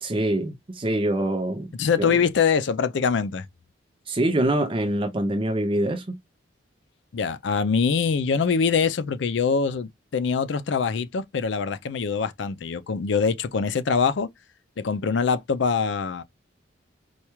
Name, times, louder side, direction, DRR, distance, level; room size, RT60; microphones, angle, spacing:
voice 1, 0.0-1.7 2.0-2.1 4.1-6.2, right 1 dB, 25° right, 0.5 m, -25 dB
voice 2, 1.8-3.5 7.1-14.3 14.8-16.2, left 5 dB, 65° left, 0.4 m, -24 dB
4.4 x 2.3 x 3.0 m
head